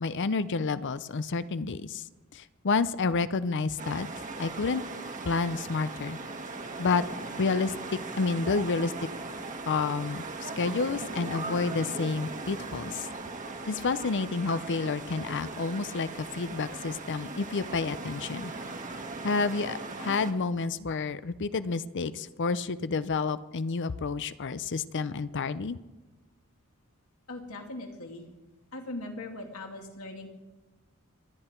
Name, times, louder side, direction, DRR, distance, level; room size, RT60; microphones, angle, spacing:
voice 1, 0.0-2.0 2.3-4.1 4.4-4.8 5.2-6.2 6.8-7.0 7.4-8.9 9.7-13.1 13.7-18.5 19.2-25.8, left 4 dB, 55° left, 15 dB, 0.6 m, -29 dB
sound 1, 3.8-20.3, right 3 dB, 35° right, 1.5 m, -39 dB
voice 2, 27.3-28.2 28.7-30.3, left 2 dB, 70° left, 2 dB, 2.4 m, -40 dB
26.0 x 10.0 x 4.5 m, 1.1 s
head